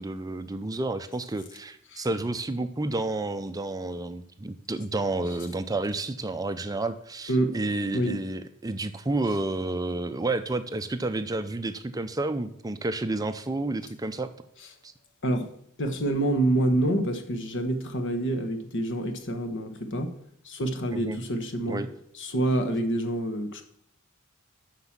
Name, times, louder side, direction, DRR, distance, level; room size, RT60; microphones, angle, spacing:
voice 1, 0.0-14.3 14.8-14.9 20.9-21.2 21.7-21.9, right 2 dB, 15° right, 10 dB, 0.5 m, -30 dB
voice 2, 15.8-20.1 20.4-21.8 22.2-23.6, right 1 dB, 60° left, 8 dB, 1.3 m, -27 dB
7.9 x 6.1 x 7.4 m, 0.70 s
head